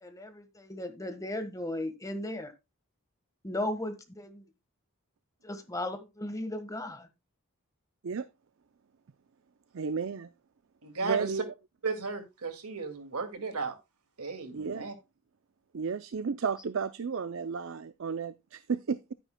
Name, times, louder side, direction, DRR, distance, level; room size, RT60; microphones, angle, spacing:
voice 1, 0.0-2.5 3.4-4.4 5.4-7.1, left 1 dB, 15° left, 1.4 m, -36 dB
voice 2, 9.7-10.3 11.0-11.5 14.5-14.9 15.7-19.1, right 5 dB, 60° right, 0.5 m, -33 dB
voice 3, 10.8-11.3 11.8-13.7 14.2-14.9, right 4 dB, 85° right, 2.3 m, -35 dB
11.5 x 10.0 x 2.2 m
head